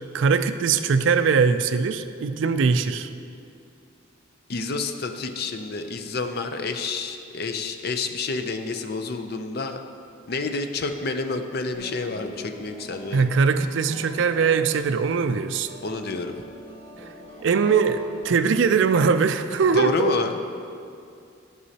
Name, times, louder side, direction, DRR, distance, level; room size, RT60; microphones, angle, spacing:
voice 1, 0.1-3.1 13.1-15.7 17.4-20.1, right 5 dB, 60° right, 10 dB, 0.3 m, -21 dB
voice 2, 4.5-9.8 10.3-13.3 15.8-16.3 19.7-20.4, left 3 dB, 50° left, 6 dB, 0.5 m, -29 dB
sound 1, 11.7-18.8, equal, 25° left, 1.9 m, -43 dB
12.5 x 6.2 x 2.8 m, 2.5 s
head